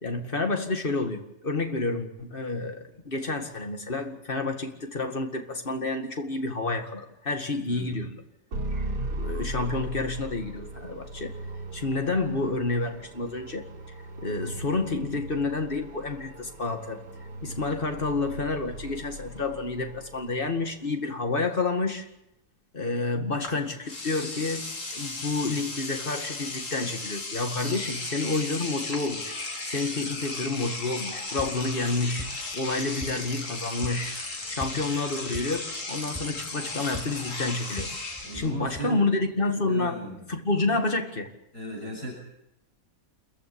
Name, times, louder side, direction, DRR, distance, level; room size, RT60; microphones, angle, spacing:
voice 1, 0.0-8.2 9.1-11.3 11.7-13.6 14.2-17.0 17.4-22.1 22.7-24.6 24.9-29.4 29.6-32.3 32.5-34.1 34.5-37.9 38.3-40.0 40.3-41.3, left 3 dB, 30° left, 2.2 m, -29 dB
sound 1, 8.5-20.7, right 1 dB, 85° right, 4.1 m, -38 dB
Engine / Domestic sounds home sounds, 23.4-23.6 23.9-38.5, left 2 dB, 50° left, 2.9 m, -36 dB
sound 2, 31.1-38.8, left 1 dB, ahead, 3.0 m, -43 dB
voice 2, 38.2-39.0 39.7-40.2 41.5-42.1, right 2 dB, 70° left, 8.0 m, -37 dB
27.5 x 15.0 x 8.6 m
omnidirectional pair, 1.8 m